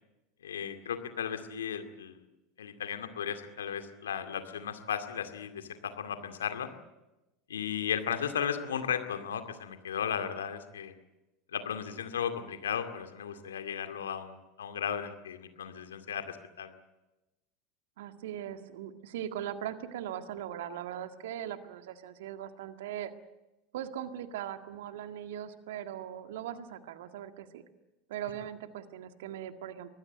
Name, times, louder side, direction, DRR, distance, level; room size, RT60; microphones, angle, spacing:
voice 1, 0.4-2.2 2.6-6.7 7.5-10.9 11.5-16.7, left 8 dB, 80° left, 7 dB, 2.2 m, -35 dB
voice 2, 18.0-23.1 23.7-27.6 28.1-29.9, right 10 dB, 70° right, 8 dB, 1.8 m, -40 dB
24.5 x 20.0 x 8.0 m, 0.99 s
hypercardioid pair, 80°, 0 cm